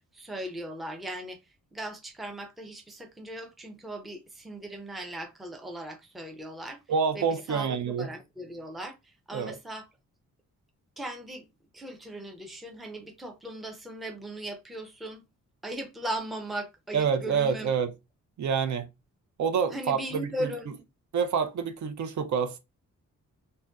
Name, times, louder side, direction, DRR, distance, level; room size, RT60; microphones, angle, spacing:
voice 1, 0.1-1.4 1.7-6.8 7.1-9.9 11.0-11.4 11.7-15.2 15.6-17.7 19.7-20.7, right 1 dB, ahead, 0.5 m, -38 dB
voice 2, 6.9-8.1 9.3-9.5 16.9-17.9 18.4-18.9 19.4-20.3 21.1-22.6, right 6 dB, 60° right, 0.6 m, -27 dB
2.5 x 2.1 x 3.4 m
wide cardioid pair, 155°, 32 cm